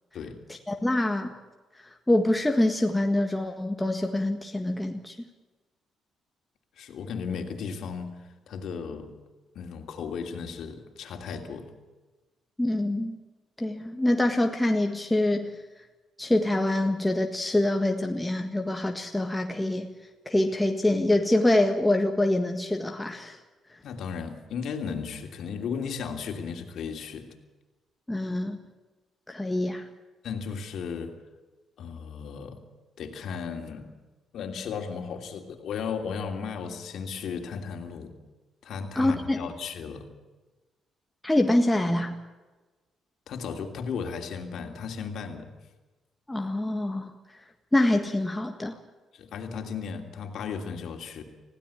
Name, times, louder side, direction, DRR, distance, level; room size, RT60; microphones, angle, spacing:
voice 1, 0.7-1.3 2.1-5.2 12.6-13.2 13.6-15.5 16.2-19.9 20.3-23.4 28.1-28.6 29.3-29.9 39.0-39.5 41.2-42.2 46.3-47.1 47.7-48.8, left 1 dB, 10° left, 4 dB, 1.6 m, -25 dB
voice 2, 6.8-8.2 8.5-9.1 9.5-11.7 23.8-27.3 30.2-31.1 31.8-32.6 33.0-33.9 34.3-38.1 38.6-40.1 43.3-45.5 49.1-51.2, left 6 dB, 70° left, 5 dB, 2.9 m, -35 dB
20.5 x 16.0 x 8.6 m, 1.2 s
cardioid pair, 90°, 0 cm